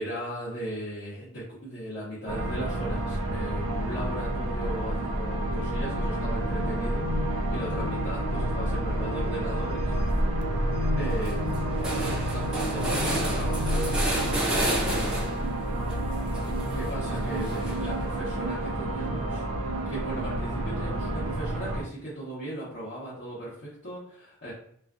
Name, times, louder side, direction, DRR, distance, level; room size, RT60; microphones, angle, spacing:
voice 1, 0.0-9.9 11.0-11.9 12.3-15.2 16.7-19.4 19.9-24.5, equal, 45° left, -10 dB, 0.7 m, -37 dB
sound 1, 2.3-21.8, right 1 dB, 65° right, 0.4 m, -29 dB
sound 2, 9.9-10.4 10.8-10.9 11.1-15.5 15.9-18.0, right 1 dB, 5° right, 0.6 m, -31 dB
2.4 x 2.2 x 2.4 m, 0.66 s
head